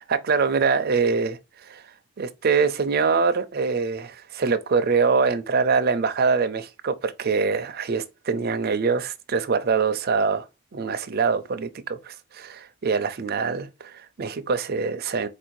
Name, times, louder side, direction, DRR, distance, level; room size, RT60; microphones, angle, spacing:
voice 1, 0.0-1.8 2.2-10.5 10.7-15.3, right 5 dB, 50° right, 0.5 m, -24 dB
4.3 x 2.7 x 4.4 m
head